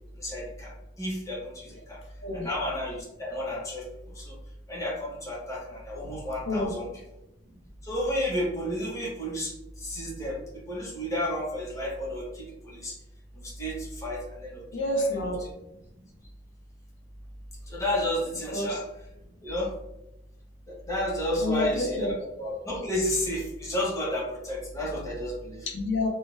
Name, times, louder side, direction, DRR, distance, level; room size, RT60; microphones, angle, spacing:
voice 1, 0.2-0.7 1.0-2.0 2.3-3.8 4.2-4.3 4.7-6.9 7.8-9.5 9.8-10.4 10.7-12.9 13.4-14.6 17.7-18.8 19.4-19.7 20.9-25.6, left 1 dB, 15° left, -4 dB, 0.7 m, -31 dB
voice 2, 6.5-6.8 14.7-15.5 18.5-18.8 21.4-22.1 25.7-26.1, left 1 dB, 75° left, 1 dB, 0.5 m, -28 dB
2.1 x 2.1 x 3.1 m, 0.90 s
head